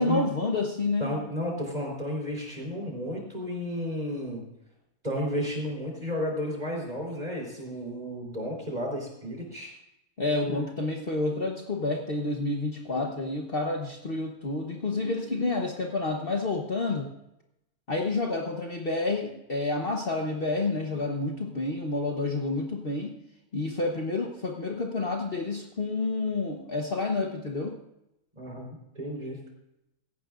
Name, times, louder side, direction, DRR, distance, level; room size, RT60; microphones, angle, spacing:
voice 1, 0.0-1.1 10.2-17.1 17.9-23.1 23.5-27.8, left 2 dB, 40° left, 1 dB, 1.3 m, -29 dB
voice 2, 1.0-4.4 5.0-9.7 28.4-29.4, left 1 dB, 30° right, -1 dB, 4.2 m, -32 dB
17.0 x 14.5 x 2.6 m, 0.86 s
omnidirectional pair, 1.6 m